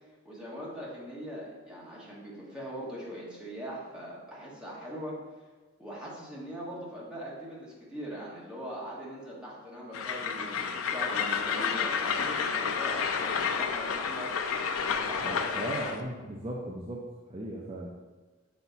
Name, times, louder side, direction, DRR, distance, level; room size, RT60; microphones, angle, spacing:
voice 1, 0.2-5.2 5.8-14.3 14.8-15.9, equal, 5° right, -6 dB, 1.4 m, -41 dB
Train, 9.9-16.0, left 6 dB, 90° left, 0.5 m, -30 dB
voice 2, 15.2-17.9, right 1 dB, 30° right, -3 dB, 0.6 m, -37 dB
5.9 x 4.3 x 4.0 m, 1.3 s
head